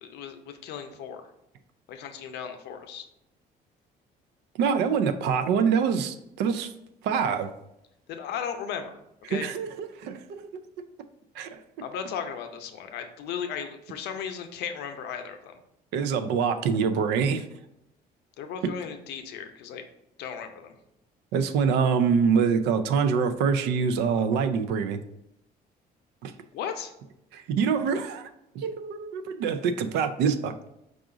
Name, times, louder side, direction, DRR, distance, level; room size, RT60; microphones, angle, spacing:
voice 1, 0.0-1.2 1.9-3.0 8.1-9.0 9.3-9.5 11.8-15.5 18.4-19.9 20.2-20.7 26.5-26.9, left 7 dB, 80° left, 6 dB, 0.6 m, -36 dB
voice 2, 4.6-6.7 7.0-7.5 9.3-10.5 11.4-11.6 15.9-17.5 21.3-25.0 26.2-26.3 27.3-28.3 28.5-30.7, right 6 dB, 85° right, 9 dB, 0.4 m, -25 dB
4.9 x 2.4 x 3.8 m, 0.83 s
cardioid pair, 110°, 17 cm